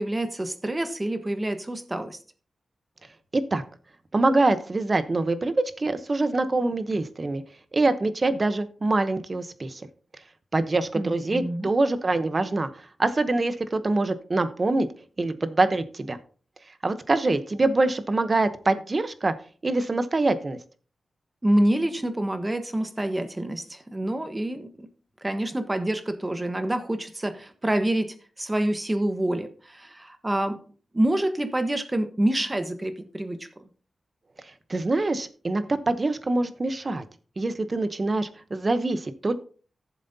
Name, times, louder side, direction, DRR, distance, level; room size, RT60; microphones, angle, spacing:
voice 1, 0.0-2.2 10.9-11.7 21.4-24.9 25.2-30.6 30.9-33.7, right 1 dB, 20° right, 8 dB, 1.2 m, -27 dB
voice 2, 4.1-7.4 7.7-9.9 10.5-14.9 15.2-16.2 16.8-19.3 19.6-20.6 34.7-37.0 37.4-39.3, right 2 dB, 35° right, 11 dB, 0.9 m, -24 dB
14.5 x 7.4 x 2.8 m, 0.40 s
wide cardioid pair, 110°, 0 cm